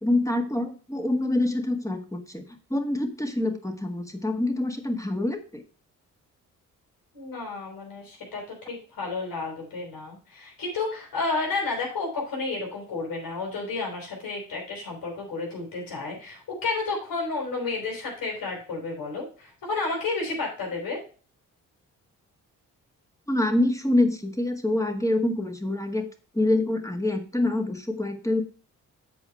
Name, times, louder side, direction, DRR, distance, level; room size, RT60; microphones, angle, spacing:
voice 1, 0.0-5.6 23.3-26.1 26.3-28.4, left 1 dB, 10° left, 6 dB, 1.9 m, -26 dB
voice 2, 7.1-21.0, left 3 dB, 75° left, -1 dB, 5.1 m, -31 dB
8.1 x 4.9 x 5.5 m, 0.37 s
supercardioid pair, 55°, 35 cm